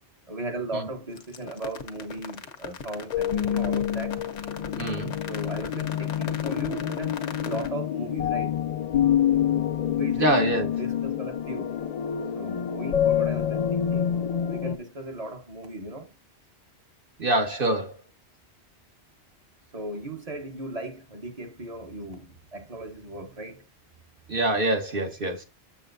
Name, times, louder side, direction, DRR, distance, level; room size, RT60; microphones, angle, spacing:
voice 1, 0.3-4.2 5.3-7.2 7.4-8.6 9.8-11.7 12.4-14.1 14.5-16.1 19.7-23.6, right 2 dB, 35° right, 1.1 m, -37 dB
sound 1, 1.2-7.7, left 6 dB, 90° left, 1.2 m, -37 dB
sound 2, 3.1-14.7, left 9 dB, 65° left, 0.4 m, -27 dB
voice 2, 4.8-5.1 10.2-10.7 17.2-17.9 24.3-25.4, right 1 dB, 50° right, 1.5 m, -25 dB
7.0 x 7.0 x 2.6 m
omnidirectional pair, 1.2 m